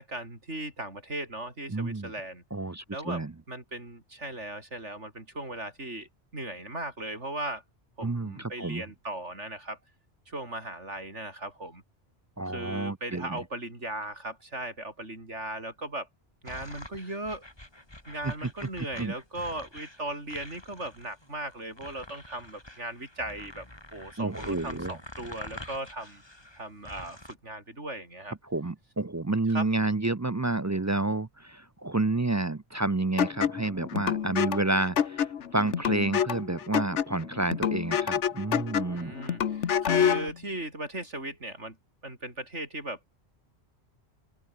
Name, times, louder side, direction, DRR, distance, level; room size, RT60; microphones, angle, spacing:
voice 1, 0.0-2.4 2.9-3.2 3.5-7.6 8.0-9.8 10.3-11.8 12.5-16.1 16.4-17.4 18.1-23.7 23.9-26.2 26.6-28.4 29.5-29.7 38.9-41.8 42.0-43.1, right 1 dB, 85° right, 7.1 m, -37 dB
voice 2, 1.7-2.1 2.5-3.3 8.0-8.8 12.4-13.4 18.2-18.3 19.0-19.1 24.2-25.0 28.5-35.3 35.5-39.1, right 2 dB, 25° right, 0.4 m, -29 dB
sound 1, 16.5-27.3, left 1 dB, 20° left, 3.6 m, -46 dB
sound 2, 33.2-40.3, left 8 dB, 85° left, 1.3 m, -28 dB
open air
omnidirectional pair, 1.2 m